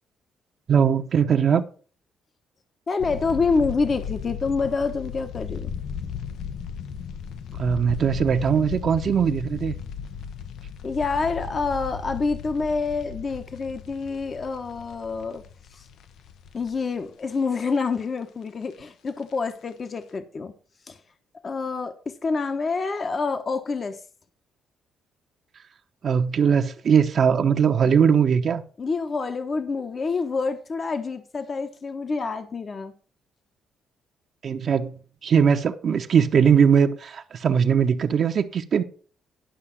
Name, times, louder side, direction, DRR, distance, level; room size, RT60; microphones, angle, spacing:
voice 1, 0.7-1.6 7.6-9.7 26.0-28.6 34.4-38.8, right 7 dB, 55° right, 0.9 m, -20 dB
voice 2, 2.9-5.7 10.8-15.4 15.7-15.9 16.5-20.5 20.9-21.0 21.4-24.0 28.8-32.9, left 4 dB, 40° left, 1.1 m, -27 dB
sound 1, 3.0-17.0 17.4-17.5 17.7-18.0 18.9-19.3 19.7-19.8 20.1-20.2, left 7 dB, 75° left, 0.8 m, -36 dB
11.5 x 5.9 x 5.9 m
cardioid pair, 90°, 0 cm